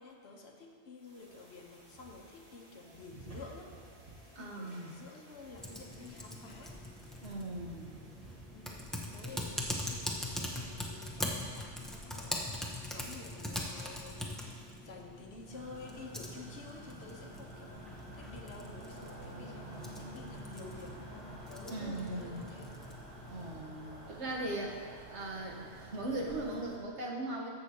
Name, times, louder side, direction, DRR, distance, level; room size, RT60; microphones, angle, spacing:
voice 1, 0.0-6.8 8.5-12.6 12.9-22.8, left 3 dB, 70° left, 2 dB, 1.1 m, -51 dB
sound 1, 1.0-11.7, right 2 dB, 35° right, 1.6 m, -55 dB
voice 2, 4.3-4.9 7.2-8.0 21.7-22.4 23.3-24.8 25.1-27.5, right 1 dB, 75° right, -2 dB, 1.5 m, -39 dB
Typing, 5.6-23.6, left 1 dB, ahead, 0.8 m, -42 dB
sound 2, 15.5-26.8, right 1 dB, 60° right, 1.7 m, -49 dB
14.5 x 6.8 x 2.9 m, 2.1 s
omnidirectional pair, 1.2 m